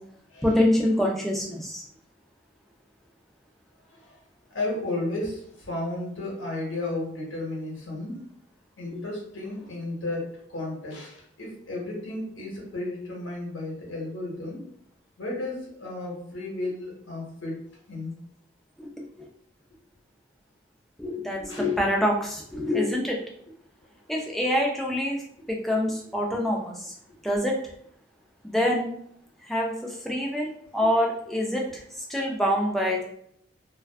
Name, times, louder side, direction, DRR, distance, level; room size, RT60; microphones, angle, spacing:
voice 1, 0.4-1.8 18.8-19.3 21.0-23.2 24.1-25.2 25.5-26.9 27.2-27.6 28.4-28.9 29.5-31.8 32.1-33.0, left 1 dB, ahead, -1 dB, 0.3 m, -26 dB
voice 2, 3.9-4.2 4.5-8.2 8.8-14.6 15.2-17.6 17.9-18.1 21.5-21.7, left 2 dB, 85° left, -2 dB, 0.9 m, -33 dB
2.4 x 2.3 x 2.2 m, 0.70 s
head